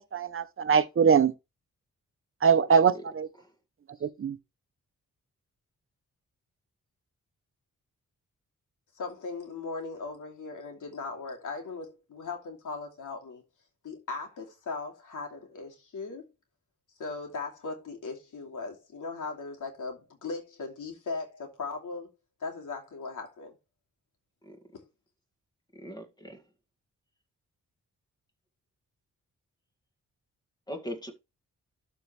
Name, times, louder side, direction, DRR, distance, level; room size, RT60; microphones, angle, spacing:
voice 1, 0.1-1.3 2.4-3.3 4.0-4.4, right 6 dB, 45° right, 0.9 m, -22 dB
voice 2, 8.9-13.4 13.8-16.3 17.0-22.1 22.4-23.5 24.7-24.8, left 4 dB, 80° left, 2.7 m, -38 dB
voice 3, 25.7-26.4 30.7-31.1, equal, 15° left, 2.0 m, -39 dB
12.5 x 4.7 x 3.3 m
wide cardioid pair, 120°, 31 cm